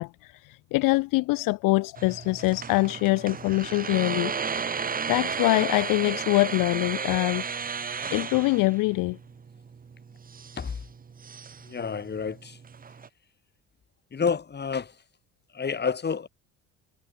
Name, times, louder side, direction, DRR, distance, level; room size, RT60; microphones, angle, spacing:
voice 1, 0.0-7.4 8.1-9.2, left 22 dB, 70° left, 0.7 m, -24 dB
sound 1, 2.0-13.1, right 6 dB, 25° right, 1.4 m, -34 dB
voice 2, 11.6-12.6 14.1-14.9 15.5-16.3, left 6 dB, 30° left, 3.4 m, -29 dB
cardioid pair, 95°, 34 cm